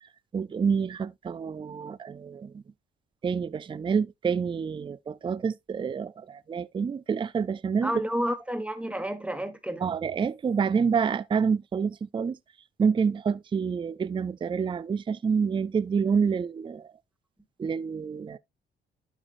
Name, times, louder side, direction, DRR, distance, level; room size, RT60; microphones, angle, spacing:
voice 1, 0.3-2.6 3.2-7.9 9.8-12.4 12.8-16.9 17.6-18.4, right 6 dB, 25° right, 0.4 m, -28 dB
voice 2, 7.8-9.8, equal, 5° right, 1.3 m, -30 dB
12.0 x 4.8 x 2.5 m
cardioid pair, 90°, 20 cm